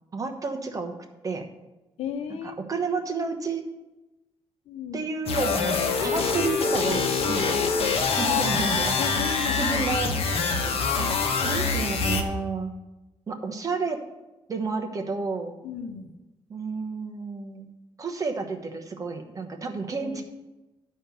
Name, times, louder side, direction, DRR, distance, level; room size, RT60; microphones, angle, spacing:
voice 1, 0.1-0.9 1.2-1.4 2.3-3.6 4.9-7.6 8.2-9.0 9.5-10.1 11.0-11.1 11.4-12.7 13.3-14.0 14.5-15.5 16.5-17.7 18.0-20.2, right 4 dB, 35° right, 5 dB, 1.1 m, -30 dB
voice 2, 2.0-2.6 4.7-5.0 7.6-8.0 8.3-8.6 9.0-10.5 15.6-16.1 19.9-20.2, left 7 dB, 90° left, 7 dB, 0.9 m, -36 dB
sound 1, 5.3-12.2, left 4 dB, 65° left, 1.1 m, -25 dB
11.5 x 4.4 x 6.8 m, 1.1 s
cardioid pair, 130°, 10 cm